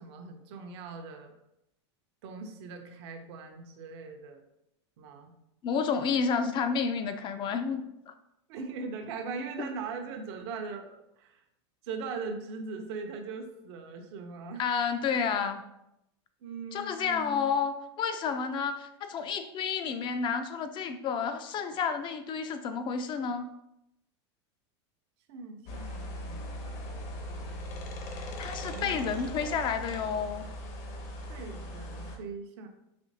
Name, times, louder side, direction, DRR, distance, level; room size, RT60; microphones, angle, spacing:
voice 1, 0.0-1.3 2.2-4.4 5.0-5.3 8.5-11.4 11.8-14.7 16.4-17.5 25.3-27.3 28.6-29.1 31.3-32.7, right 4 dB, 65° right, 4 dB, 0.6 m, -40 dB
voice 2, 5.6-8.1 9.6-9.7 14.6-15.6 16.7-23.5 28.2-30.5, left 6 dB, 35° left, 9 dB, 0.4 m, -30 dB
sound 1, 25.7-32.2, equal, 50° left, 0.8 m, -39 dB
4.2 x 2.8 x 2.7 m, 0.84 s
supercardioid pair, 115°, 15 cm